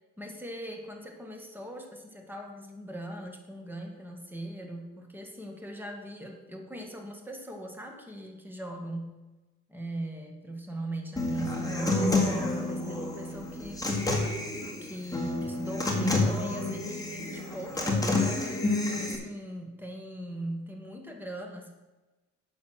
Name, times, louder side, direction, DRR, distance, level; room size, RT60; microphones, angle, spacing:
voice 1, 0.2-9.2 9.7-13.9 14.8-21.7, right 1 dB, 5° right, 2 dB, 1.8 m, -40 dB
Human voice / Acoustic guitar, 11.2-19.1, left 2 dB, 10° left, 2.0 m, -29 dB
8.6 x 6.3 x 6.3 m, 1.1 s
cardioid pair, 90°, 30 cm